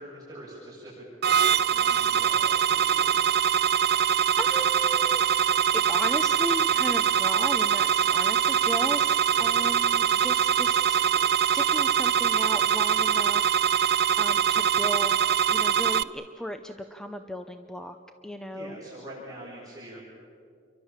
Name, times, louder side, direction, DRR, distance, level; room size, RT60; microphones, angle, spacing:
voice 1, 0.0-3.4 9.3-9.6 18.5-20.0, right 1 dB, 20° right, -8 dB, 7.7 m, -44 dB
sound 1, 1.2-16.0, right 8 dB, 60° right, 0.6 m, -23 dB
voice 2, 3.8-15.2 15.5-18.0 18.2-18.8, equal, 5° left, 6 dB, 0.8 m, -36 dB
30.0 x 23.5 x 7.4 m, 2.4 s
head